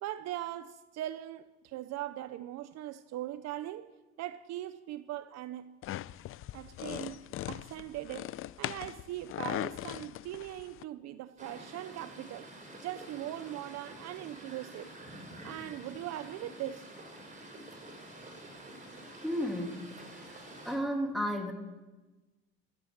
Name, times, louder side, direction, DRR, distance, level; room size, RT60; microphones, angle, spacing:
voice 1, 0.0-3.9 4.2-5.8 6.5-12.5 12.8-14.9 15.4-16.9, right 13 dB, 60° right, 0.7 m, -40 dB
sound 1, 5.8-10.8, left 14 dB, 45° left, 0.5 m, -40 dB
sound 2, 11.4-20.8, right 1 dB, 25° right, 4.8 m, -48 dB
voice 2, 19.2-19.8 20.1-20.4 20.6-21.5, equal, ahead, 2.7 m, -33 dB
13.5 x 9.0 x 8.8 m
supercardioid pair, 95°, 30 cm